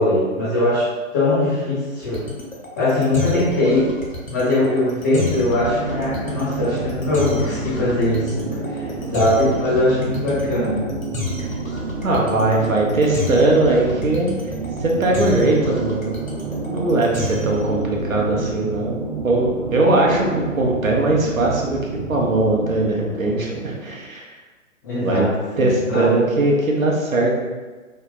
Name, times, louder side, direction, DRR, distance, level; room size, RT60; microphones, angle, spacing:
voice 1, 0.0-2.3 2.8-3.9 4.3-10.9 24.8-26.2, left 1 dB, 15° left, -8 dB, 0.5 m, -21 dB
sound 1, 2.0-17.7, left 3 dB, 85° left, 0.9 m, -31 dB
sound 2, 5.3-24.0, right 3 dB, 30° right, 0.7 m, -29 dB
voice 2, 12.0-14.3 14.8-16.1 16.6-18.9 19.2-21.8 22.1-24.3 25.0-25.3 25.6-27.3, right 2 dB, 80° right, -2 dB, 0.9 m, -20 dB
3.2 x 2.1 x 3.9 m, 1.3 s
figure-of-eight pair, 125°, 40 cm